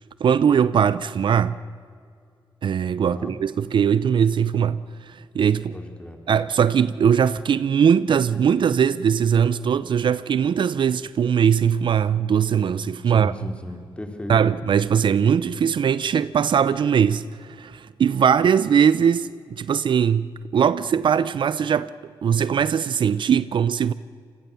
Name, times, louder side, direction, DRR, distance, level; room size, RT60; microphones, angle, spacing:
voice 1, 0.2-1.6 2.6-4.8 5.1-5.8 6.3-13.3 14.3-20.3 20.5-21.9 22.2-23.9, right 7 dB, 65° right, 0.6 m, -20 dB
voice 2, 3.0-3.3 5.7-6.2 13.1-14.3, equal, 10° left, 3.8 m, -35 dB
27.0 x 21.0 x 7.0 m
cardioid pair, 75°, 9 cm